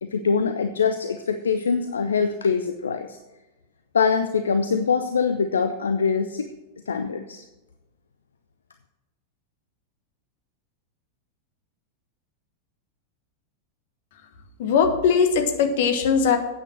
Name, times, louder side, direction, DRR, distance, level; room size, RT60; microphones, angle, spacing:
voice 1, 0.0-3.2 3.9-6.5 6.9-7.4, left 5 dB, 70° left, 8 dB, 0.5 m, -23 dB
voice 2, 14.6-16.4, left 6 dB, 55° left, 7 dB, 1.3 m, -20 dB
8.9 x 8.1 x 5.9 m, 1.0 s
figure-of-eight pair, 90°, 0 cm